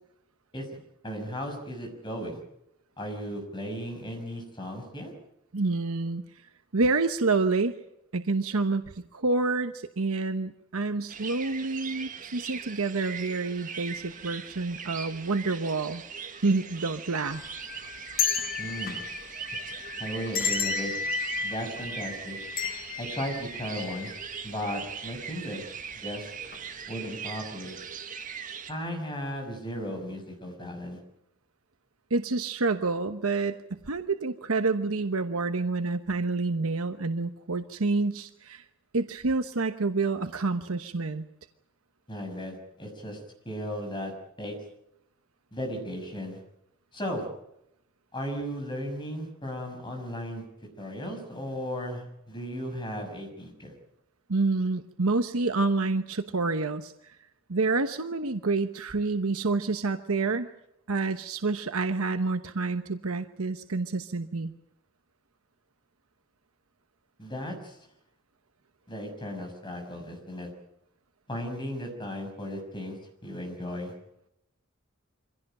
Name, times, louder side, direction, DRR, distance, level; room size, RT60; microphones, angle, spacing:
voice 1, 1.0-2.4 3.0-5.1 18.6-19.0 20.0-20.9 21.4-22.4 23.0-24.1 24.4-25.6 25.9-26.3 26.9-27.7 28.7-31.0 42.1-43.2 43.4-44.5 45.5-46.4 46.9-47.3 48.1-50.4 50.8-53.7 67.2-67.8 68.9-70.5 71.3-73.0 73.2-73.9, equal, 20° left, 2 dB, 6.3 m, -35 dB
voice 2, 5.5-6.2 6.7-7.7 8.1-8.8 9.1-16.0 16.4-17.4 32.1-38.6 38.9-41.2 54.3-57.2 57.5-60.5 60.9-64.5, right 3 dB, 85° right, 8 dB, 1.1 m, -28 dB
sound 1, 11.1-28.7, right 7 dB, 40° right, 1.8 m, -40 dB
sound 2, 17.3-24.4 24.8-24.9 25.8-26.1 26.5-26.6, left 6 dB, 40° left, 1.4 m, -33 dB
25.0 x 16.5 x 9.0 m, 0.83 s
head